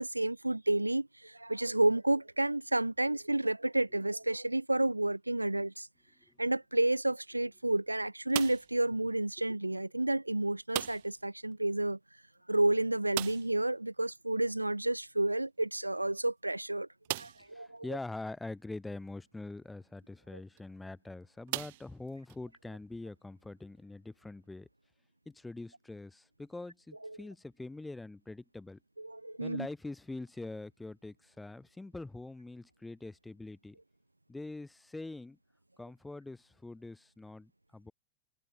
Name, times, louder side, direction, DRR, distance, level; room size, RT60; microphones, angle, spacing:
voice 1, 0.0-5.9 6.4-12.0 12.5-17.8 27.0-27.2 29.0-29.7, right 2 dB, 85° right, 1.4 m, -31 dB
sound 1, 8.3-8.9 10.7-11.3 11.5-11.6 11.9-12.0 13.1-13.7 15.4-15.5 16.1-16.2 17.0-17.6 18.3-18.4 20.4-20.6 21.5-22.4, right 20 dB, 50° right, 0.5 m, -38 dB
voice 2, 17.4-24.7 25.3-28.8 29.4-33.8 34.3-35.4 35.8-37.9, left 2 dB, 5° left, 7.4 m, -44 dB
figure-of-eight pair, 90°, 0 cm